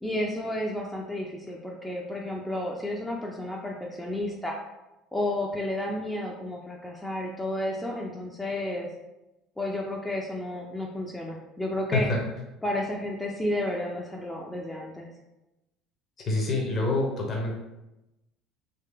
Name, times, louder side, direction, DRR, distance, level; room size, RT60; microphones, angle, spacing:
voice 1, 0.0-4.6 5.1-8.9 9.6-12.1 12.6-15.1, left 1 dB, 10° left, -1 dB, 0.5 m, -32 dB
voice 2, 16.2-17.5, left 2 dB, 35° left, -1 dB, 0.9 m, -26 dB
3.1 x 2.8 x 3.4 m, 0.96 s
figure-of-eight pair, 60°, 0 cm